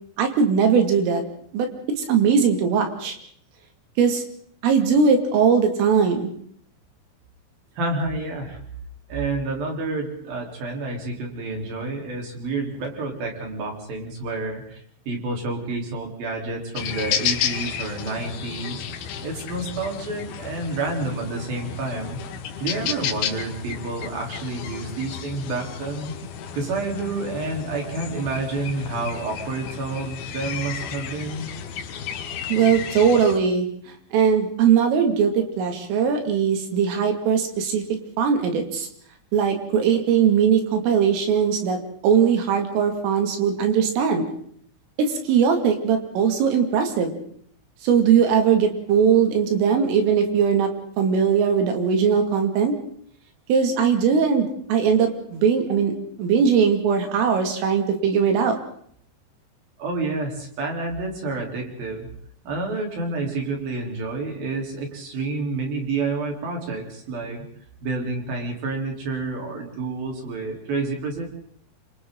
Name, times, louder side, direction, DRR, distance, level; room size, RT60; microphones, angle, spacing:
voice 1, 0.2-1.2 1.5-1.7 2.0-3.2 4.0-4.2 4.6-6.3 32.5-33.7 34.1-37.8 38.2-38.9 39.3-41.8 42.0-44.3 45.0-47.2 47.8-50.7 51.0-52.7 53.5-58.6, right 6 dB, 75° right, 5 dB, 5.0 m, -20 dB
voice 2, 7.8-8.6 9.1-14.8 15.1-18.8 19.2-22.2 22.6-26.1 26.5-31.5 59.8-62.1 62.5-67.4 67.8-71.3, right 3 dB, 50° right, 2 dB, 5.3 m, -29 dB
sound 1, 16.7-33.4, left 8 dB, 65° left, 2.7 m, -32 dB
29.0 x 25.5 x 3.9 m, 0.62 s
omnidirectional pair, 5.9 m